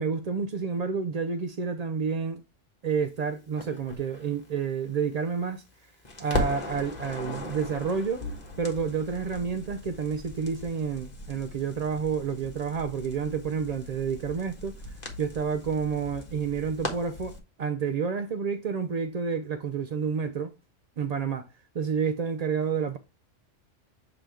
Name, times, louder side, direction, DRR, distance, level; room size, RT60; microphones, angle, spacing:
voice 1, 0.0-2.4 2.8-5.6 6.2-8.3 8.6-14.8 15.2-20.5 21.0-21.5 21.7-23.0, right 6 dB, 65° right, 0.4 m, -29 dB
Crackle, 3.6-5.7 6.0-17.4, left 1 dB, 35° left, 1.5 m, -38 dB
7.4 x 3.9 x 3.3 m
omnidirectional pair, 1.3 m